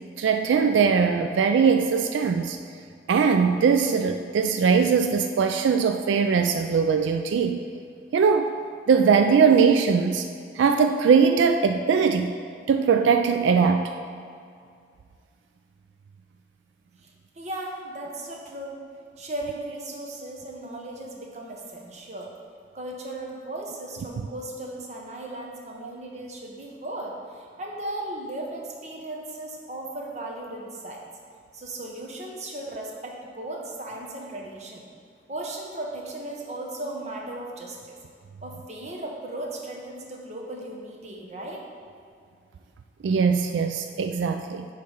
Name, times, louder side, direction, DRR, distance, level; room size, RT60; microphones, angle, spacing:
voice 1, 0.2-2.6 3.1-7.6 8.1-8.5 8.9-10.3 10.5-12.3 12.7-13.9 25.8-25.9 43.0-44.7, right 6 dB, 85° right, 6 dB, 0.3 m, -21 dB
voice 2, 17.0-18.8 19.2-22.3 22.7-31.0 31.5-34.8 35.3-38.0 38.4-41.6, right 1 dB, 40° right, -1 dB, 0.9 m, -36 dB
8.4 x 3.2 x 5.5 m, 2.3 s
head